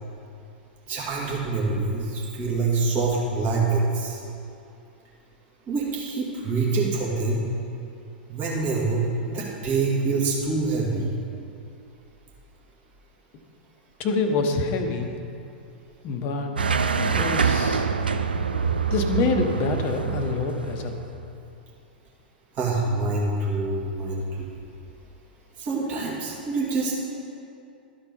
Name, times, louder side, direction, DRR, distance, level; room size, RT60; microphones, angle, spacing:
voice 1, 0.9-4.2 5.7-7.4 8.3-11.1 22.5-24.5 25.6-26.9, right 3 dB, 35° right, -4 dB, 2.1 m, -25 dB
voice 2, 14.0-15.1 16.0-17.9 18.9-20.9, left 3 dB, 35° left, 4 dB, 0.9 m, -26 dB
sound 1, 16.6-21.3, right 5 dB, 75° right, 0.4 m, -25 dB
12.5 x 4.4 x 5.4 m, 2.6 s
figure-of-eight pair, 95°, 5 cm